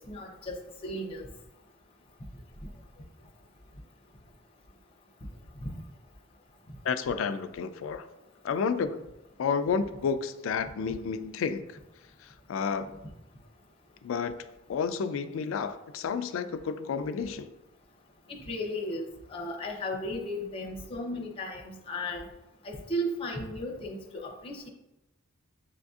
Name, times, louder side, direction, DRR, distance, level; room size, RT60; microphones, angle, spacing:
voice 1, 0.1-1.3 5.6-5.7 18.3-19.0 19.3-22.3 22.6-24.7, equal, 25° left, -1 dB, 0.6 m, -35 dB
voice 2, 6.8-8.1 8.4-9.0 9.4-11.6 12.5-13.0 14.0-14.4 14.7-17.5, left 6 dB, 70° left, 11 dB, 0.3 m, -30 dB
7.2 x 2.6 x 2.3 m, 0.94 s
head